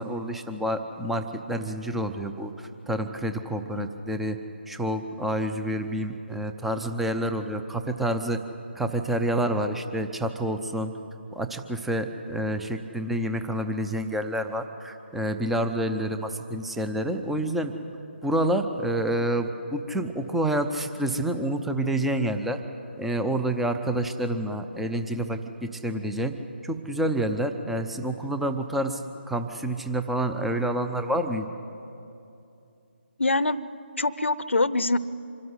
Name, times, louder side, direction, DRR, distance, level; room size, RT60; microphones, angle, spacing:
voice 1, 0.0-4.4 4.7-8.4 8.8-10.9 11.3-17.7 18.2-22.6 23.0-26.3 26.6-29.0 29.3-31.5, right 1 dB, 5° right, 7 dB, 0.6 m, -28 dB
voice 2, 33.2-33.6 34.0-35.0, left 2 dB, 75° left, 17 dB, 0.8 m, -24 dB
25.5 x 13.0 x 9.6 m, 2.7 s
figure-of-eight pair, 150°, 6 cm